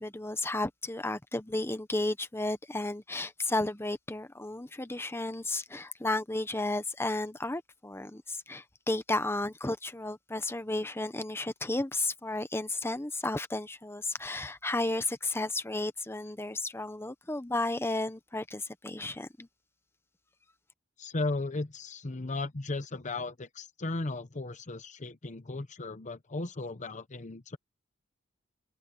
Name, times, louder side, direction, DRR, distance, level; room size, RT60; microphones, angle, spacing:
voice 1, 0.0-19.5, left 2 dB, 10° left, 1.1 m, -33 dB
voice 2, 21.0-27.6, left 2 dB, 35° left, 0.9 m, -36 dB
open air
head